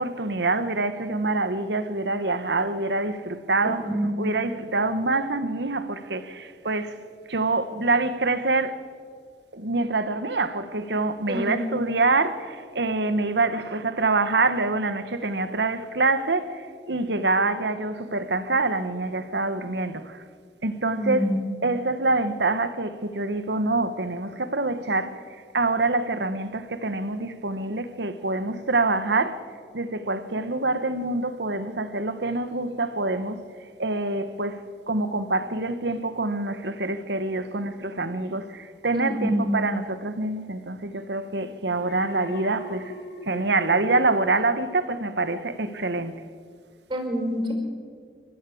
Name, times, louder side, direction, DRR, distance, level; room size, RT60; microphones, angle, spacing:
voice 1, 0.0-3.9 4.2-7.0 7.3-8.8 9.5-20.2 20.6-21.2 21.6-25.2 25.5-29.4 29.7-33.4 33.8-42.9 43.3-46.2, right 3 dB, 75° right, 1.3 m, -26 dB
voice 2, 3.6-4.1 11.3-11.7 20.8-21.4 38.9-39.5 46.9-47.5, equal, 25° right, 4.8 m, -27 dB
Alarm, 41.8-45.1 45.5-45.8, right 1 dB, 60° left, 2.8 m, -39 dB
28.0 x 14.0 x 8.6 m
head